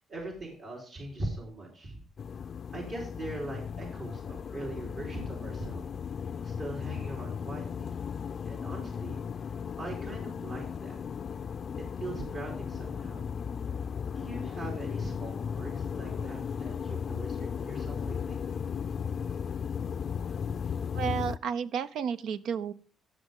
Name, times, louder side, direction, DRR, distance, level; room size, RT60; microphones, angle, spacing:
voice 1, 0.1-2.0 2.4-5.9 6.4-7.9 8.4-9.2 9.5-11.0 11.8-13.3 14.1-18.4, right 2 dB, 60° right, -2 dB, 4.0 m, -41 dB
sound 1, 2.2-21.4, left 7 dB, 50° left, 0.4 m, -36 dB
voice 2, 20.9-22.7, right 7 dB, 75° right, 13 dB, 0.6 m, -32 dB
16.5 x 6.2 x 3.7 m, 0.41 s
cardioid pair, 90°, 0 cm